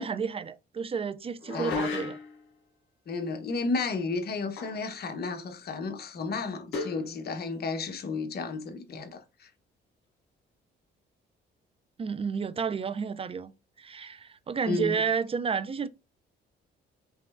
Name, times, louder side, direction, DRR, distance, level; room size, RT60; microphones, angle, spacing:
voice 1, 0.0-2.2 12.0-13.5 13.8-15.9, right 6 dB, 30° right, 0.4 m, -31 dB
sound 1, 1.4-2.4 4.6-4.9 5.2-5.3 6.7-7.1, left 3 dB, 75° left, 1.6 m, -34 dB
voice 2, 3.1-9.5 14.7-15.0, left 4 dB, 50° left, 1.1 m, -33 dB
5.3 x 3.1 x 2.4 m
cardioid pair, 90°, 20 cm